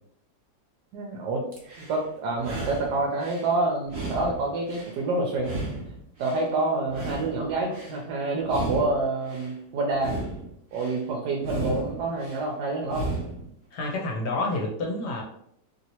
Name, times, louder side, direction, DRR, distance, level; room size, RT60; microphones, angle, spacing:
voice 1, 0.9-1.4 1.8-5.6 6.2-10.1 10.7-13.1, right 2 dB, 75° right, 0 dB, 1.2 m, -27 dB
sound 1, 1.5-2.0 2.3-3.5 3.8-5.0 5.4-6.5 6.8-8.0 8.4-9.5 9.9-11.0 11.4-12.4 12.8-13.5, right 2 dB, 50° right, 1.1 m, -34 dB
voice 2, 13.7-15.2, left 2 dB, 70° left, -1 dB, 1.3 m, -29 dB
3.1 x 2.8 x 2.8 m, 0.72 s
omnidirectional pair, 1.9 m